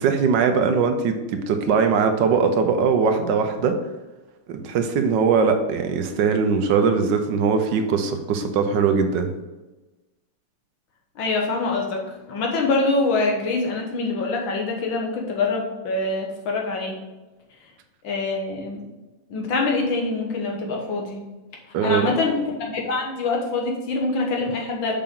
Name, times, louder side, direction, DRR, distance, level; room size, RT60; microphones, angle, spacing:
voice 1, 0.0-3.8 4.5-9.3 21.7-22.1, right 5 dB, 75° right, 6 dB, 1.3 m, -21 dB
voice 2, 11.2-12.0 12.3-17.0 18.0-18.8 19.3-21.2 21.8-24.9, left 3 dB, 80° left, 0 dB, 2.1 m, -24 dB
6.9 x 5.5 x 3.7 m, 1.1 s
omnidirectional pair, 2.1 m